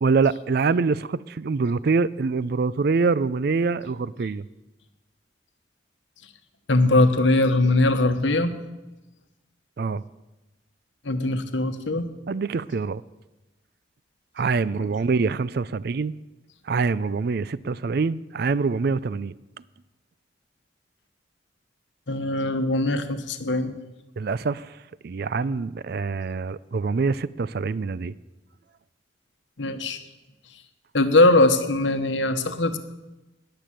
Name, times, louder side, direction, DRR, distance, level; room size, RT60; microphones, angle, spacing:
voice 1, 0.0-4.4 9.8-10.0 12.3-13.0 14.4-16.1 16.7-19.3 24.2-24.8 25.0-28.1, right 4 dB, 55° right, 0.4 m, -25 dB
voice 2, 6.7-8.6 11.0-12.1 14.7-14.9 22.1-23.7 29.6-30.0 30.9-32.8, left 2 dB, 85° left, 1.2 m, -21 dB
19.5 x 6.9 x 7.6 m
head